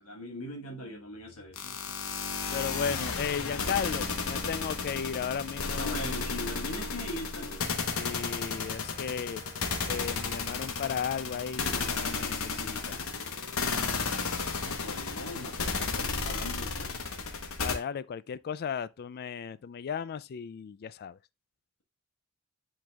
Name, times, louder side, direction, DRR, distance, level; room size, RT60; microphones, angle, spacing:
voice 1, 0.0-1.6 5.8-7.7 14.6-17.0, left 1 dB, 90° left, 1.4 m, -40 dB
sound 1, 1.6-17.8, left 4 dB, 70° left, 1.0 m, -33 dB
voice 2, 1.6-6.0 7.9-9.4 9.8-13.0 17.6-21.2, left 7 dB, 45° left, 0.3 m, -35 dB
Wind instrument woodwind instrument, 4.3-10.0, left 1 dB, 25° left, 1.1 m, -52 dB
10.0 x 3.9 x 2.3 m
head